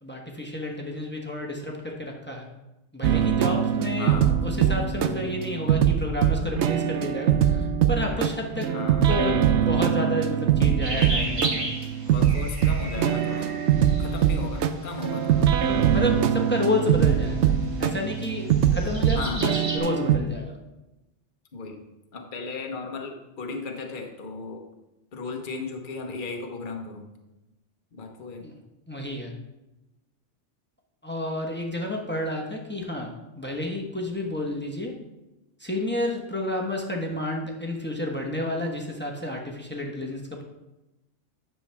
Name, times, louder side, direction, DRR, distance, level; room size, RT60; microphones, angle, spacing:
voice 1, 0.0-2.5 2.9-4.1 4.4-8.7 9.1-11.6 15.9-17.5 17.8-20.6 28.4-28.5 28.9-29.3 31.0-33.1 33.3-34.9 35.6-40.4, left 1 dB, 10° left, 0 dB, 1.1 m, -30 dB
sound 1, 3.0-20.2, right 9 dB, 70° right, 0.9 m, -23 dB
voice 2, 4.0-4.4 8.6-9.1 12.1-13.5 14.0-15.5 19.1-19.5 21.5-21.8 22.1-24.6 25.1-27.1 27.9-28.5, left 4 dB, 45° left, 3 dB, 1.1 m, -36 dB
sound 2, 10.8-19.8, right 1 dB, 30° right, 1.1 m, -36 dB
10.5 x 6.9 x 3.4 m, 0.99 s
omnidirectional pair, 1.2 m